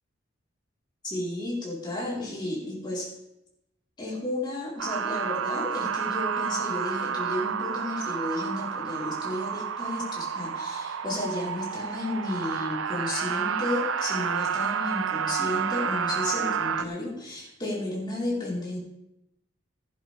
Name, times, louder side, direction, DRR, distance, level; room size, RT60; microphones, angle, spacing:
voice 1, 1.0-3.1 4.0-18.8, left 1 dB, 20° left, -6 dB, 4.2 m, -33 dB
sound 1, 4.8-16.8, right 7 dB, 75° right, 0.6 m, -30 dB
15.5 x 11.0 x 3.5 m, 0.88 s
head